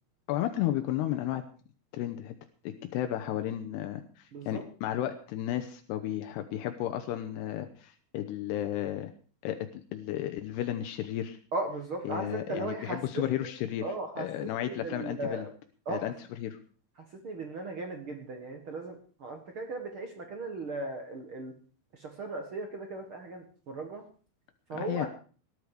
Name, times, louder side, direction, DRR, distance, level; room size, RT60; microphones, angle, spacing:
voice 1, 0.3-1.4 1.9-2.4 2.6-9.1 9.4-11.4 12.0-13.8 14.2-15.5 15.9-16.6 24.7-25.1, left 12 dB, 80° left, 7 dB, 2.9 m, -33 dB
voice 2, 4.3-4.6 11.5-13.5 13.8-15.5 15.8-16.1 17.2-21.5 21.9-24.0 24.7-25.1, right 2 dB, 50° right, 4 dB, 1.5 m, -37 dB
18.5 x 11.0 x 4.9 m, 0.39 s
omnidirectional pair, 4.8 m